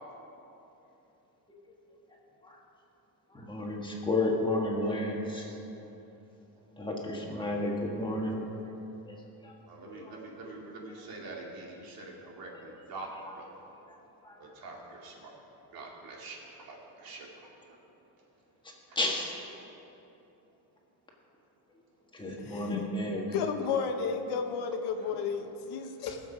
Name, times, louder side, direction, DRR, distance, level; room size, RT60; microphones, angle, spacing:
voice 1, 3.3-5.5 6.8-8.7 9.1-9.5 9.8-10.5 10.9-11.0 12.5-12.7 13.2-13.4 13.9-14.4 14.8-15.0 18.9-19.4 22.1-23.2, left 2 dB, 10° left, -2 dB, 1.5 m, -33 dB
voice 2, 9.7-13.1 13.4-13.5 14.4-15.3 15.7-17.3 22.2-22.4, right 3 dB, 65° right, -2 dB, 2.5 m, -45 dB
voice 3, 22.4-26.2, left 6 dB, 90° left, 5 dB, 1.2 m, -33 dB
20.0 x 7.3 x 4.8 m, 3.0 s
cardioid pair, 165°, 38 cm